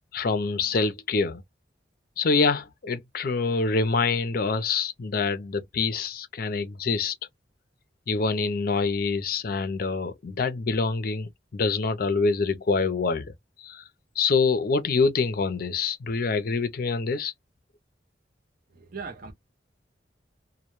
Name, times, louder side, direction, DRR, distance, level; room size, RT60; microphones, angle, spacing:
voice 1, 0.1-1.4 2.2-7.1 8.1-13.3 13.6-13.8 14.2-17.3, left 4 dB, 55° left, 0.5 m, -26 dB
voice 2, 18.7-19.3, right 5 dB, 55° right, 0.6 m, -38 dB
2.1 x 2.1 x 2.9 m
head